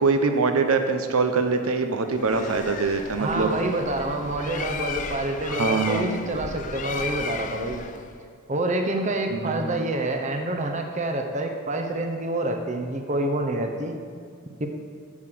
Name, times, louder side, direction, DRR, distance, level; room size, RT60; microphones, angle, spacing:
voice 1, 0.0-3.5 5.5-6.0 9.3-9.6, right 4 dB, 80° right, 6 dB, 0.7 m, -23 dB
Bird, 2.1-8.2, left 5 dB, 35° left, 0.4 m, -35 dB
voice 2, 3.2-7.8 8.5-14.0 14.6-14.7, right 2 dB, 35° right, 4 dB, 0.7 m, -27 dB
7.3 x 6.7 x 6.1 m, 2.2 s
head